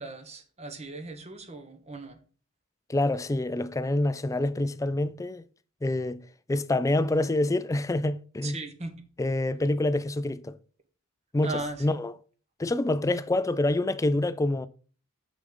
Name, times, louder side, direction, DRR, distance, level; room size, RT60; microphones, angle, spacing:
voice 1, 0.0-2.2 8.4-8.9 11.4-12.0, right 2 dB, 30° right, 1.0 m, -38 dB
voice 2, 2.9-5.5 5.8-6.2 6.5-8.6 9.2-10.6 11.3-12.2 12.6-14.7, left 2 dB, 15° left, 0.3 m, -26 dB
6.5 x 6.1 x 3.8 m
head